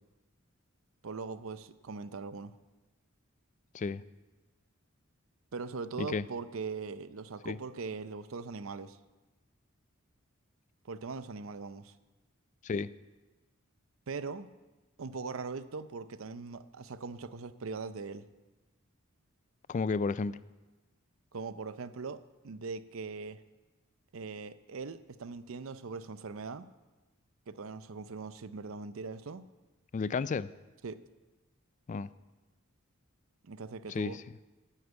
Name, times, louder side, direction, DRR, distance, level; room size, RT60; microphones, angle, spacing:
voice 1, 1.0-2.5 5.5-9.0 10.8-11.9 14.1-14.5 15.0-18.3 21.3-23.4 24.1-26.7 27.5-29.5 30.8-31.0 33.4-34.2, right 4 dB, 75° right, 14 dB, 0.6 m, -41 dB
voice 2, 19.7-20.4 29.9-30.5 31.9-32.1 33.9-34.2, left 4 dB, 35° left, 17 dB, 0.3 m, -32 dB
10.5 x 8.1 x 8.1 m, 1.2 s
head